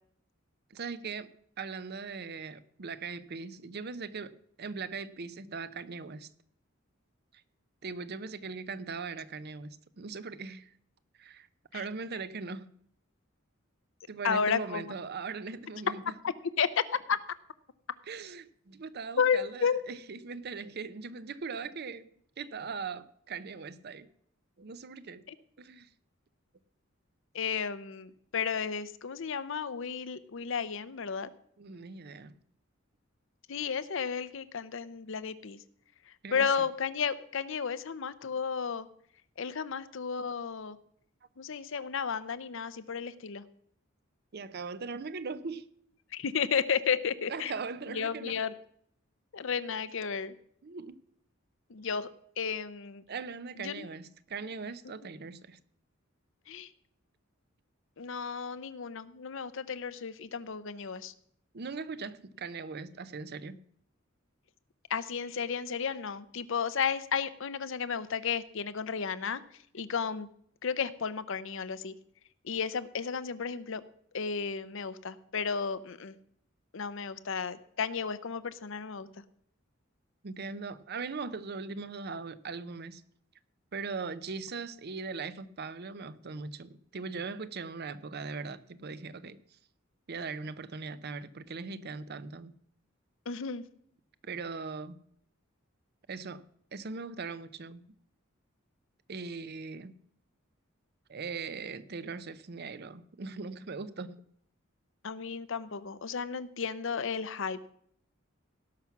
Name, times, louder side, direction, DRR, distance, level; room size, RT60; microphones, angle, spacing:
voice 1, 0.7-1.3 1.6-4.3 4.6-6.3 7.3-7.4 7.8-10.7 11.2-11.5 11.7-12.7 14.1-16.1 18.1-22.1 22.4-24.1 24.6-25.2 25.6-25.9 31.6-32.3 36.2-36.5 44.3-45.6 47.3-48.4 50.6-51.0 53.1-55.6 61.5-63.6 80.2-83.0 83.7-89.4 90.1-92.5 94.2-95.0 96.1-96.4 96.7-97.8 99.1-100.0 101.1-104.2, right 4 dB, 50° right, 0.6 m, -40 dB
voice 2, 14.2-14.9 16.2-16.8 17.1-17.2 19.2-19.8 27.3-31.3 33.5-35.6 36.3-38.9 39.4-40.8 41.4-43.4 46.1-47.5 47.9-48.5 49.3-50.3 51.7-52.1 52.4-53.0 53.6-53.9 54.9-55.0 56.5-56.7 58.0-61.1 64.9-69.4 69.7-70.3 70.6-71.9 72.4-73.8 74.1-76.2 76.7-79.1 93.3-93.6 105.0-107.7, left 6 dB, 70° left, 0.7 m, -33 dB
17.5 x 5.9 x 5.9 m
head